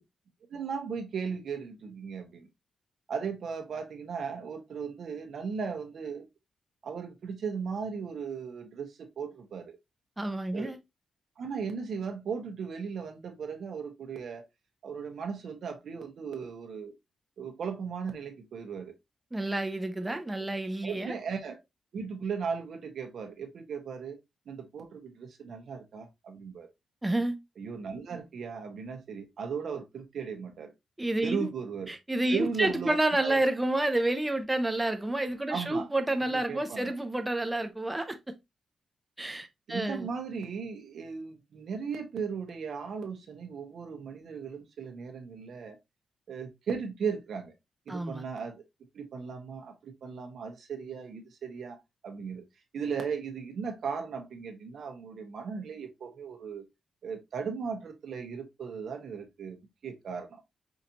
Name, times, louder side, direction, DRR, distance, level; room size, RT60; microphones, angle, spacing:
voice 1, 0.5-2.5 3.1-6.2 6.8-9.8 10.5-10.8 11.4-14.5 14.8-16.9 17.4-18.9 20.8-21.6 21.9-24.2 24.5-26.7 27.6-30.7 31.2-31.9 32.3-33.4 35.5-35.9 36.3-36.9 39.7-45.8 46.3-47.5 47.9-48.6 48.9-51.8 52.0-52.4 52.7-56.6 57.0-59.6 59.8-60.4, right 6 dB, 65° right, 1.1 m, -37 dB
voice 2, 10.2-10.8 19.3-21.1 27.0-27.4 31.0-31.5 31.9-38.2 39.2-40.1 47.9-48.2, right 1 dB, 10° right, 0.5 m, -29 dB
5.0 x 2.7 x 2.8 m
wide cardioid pair, 140°, 0 cm